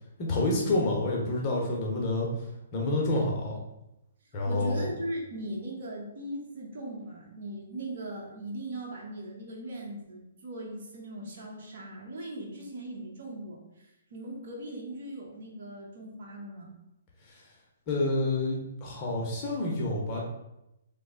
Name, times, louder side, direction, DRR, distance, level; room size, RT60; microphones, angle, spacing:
voice 1, 0.2-2.3 2.7-3.6 4.3-4.9 17.3-17.4 17.9-20.2, left 2 dB, 30° left, -2 dB, 0.7 m, -28 dB
voice 2, 4.5-16.7, right 1 dB, 60° right, -2 dB, 1.0 m, -39 dB
3.1 x 2.1 x 3.7 m, 0.88 s
hypercardioid pair, 150°, 0 cm